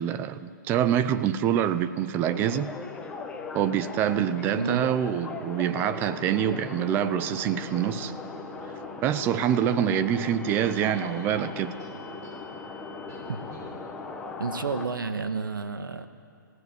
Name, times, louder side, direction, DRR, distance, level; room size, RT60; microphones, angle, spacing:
voice 1, 0.0-2.7 3.5-8.1 9.0-11.7, right 10 dB, 20° right, 13 dB, 0.6 m, -26 dB
sound 1, 2.2-14.9, left 4 dB, 10° left, 1.3 m, -39 dB
sound 2, 3.3-14.4, right 1 dB, 55° right, 4.5 m, -48 dB
voice 2, 14.4-16.1, right 4 dB, 90° right, 9 dB, 1.6 m, -30 dB
21.0 x 15.5 x 9.3 m, 2.3 s
hypercardioid pair, 145°, 11 cm